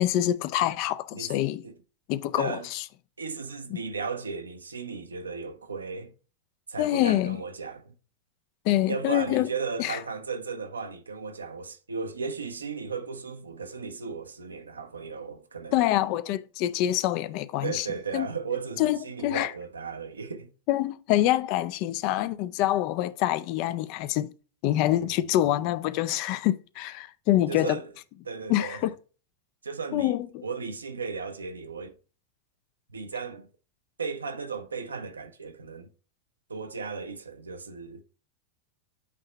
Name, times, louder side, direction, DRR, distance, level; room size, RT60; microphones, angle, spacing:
voice 1, 0.0-1.6 2.1-2.8 6.8-7.4 8.7-9.5 9.8-10.0 15.7-17.9 18.1-18.3 18.8-19.5 20.7-24.3 24.6-27.8 28.5-28.9 29.9-30.4, left 14 dB, 45° left, 0.4 m, -26 dB
voice 2, 2.4-2.7 3.2-6.1 6.7-7.9 8.9-15.8 17.6-20.5 24.9-25.3 27.5-27.9 28.2-28.8 29.6-30.1 30.4-31.9 32.9-33.5 34.0-35.9 36.5-38.0, right 5 dB, 75° right, 0.6 m, -35 dB
8.3 x 2.8 x 4.4 m
figure-of-eight pair, 90°, 0 cm